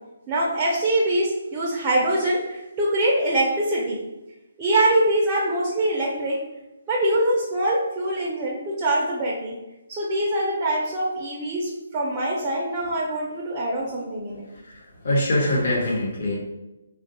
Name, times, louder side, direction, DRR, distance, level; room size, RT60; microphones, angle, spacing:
voice 1, 0.3-4.1 4.6-6.4 6.9-9.6 9.9-14.4, right 1 dB, 15° right, -3 dB, 0.4 m, -23 dB
voice 2, 14.7-16.4, left 1 dB, 45° left, -2 dB, 0.9 m, -23 dB
3.6 x 2.2 x 2.8 m, 1.0 s
hypercardioid pair, 170°, 0 cm